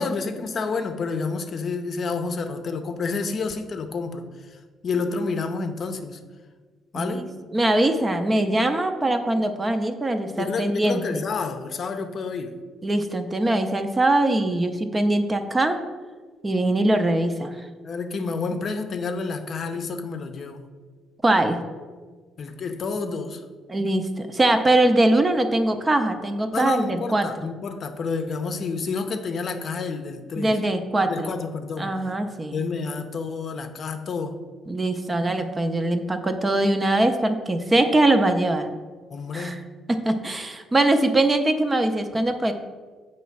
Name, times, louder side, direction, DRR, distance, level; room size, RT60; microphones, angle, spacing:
voice 1, 0.0-4.2 4.5-6.2 6.9-7.3 10.3-12.6 17.8-20.7 22.4-23.4 26.5-30.6 31.1-31.9 32.5-34.4 39.1-39.7, left 4 dB, 50° left, 7 dB, 0.6 m, -29 dB
voice 2, 7.5-11.2 12.8-15.8 16.4-17.6 21.2-21.6 23.7-27.3 30.4-31.3 31.8-32.6 34.7-38.7 39.3-39.6 39.9-42.5, right 1 dB, 20° right, 7 dB, 0.6 m, -22 dB
7.1 x 3.1 x 5.8 m, 1.5 s
cardioid pair, 100°, 0 cm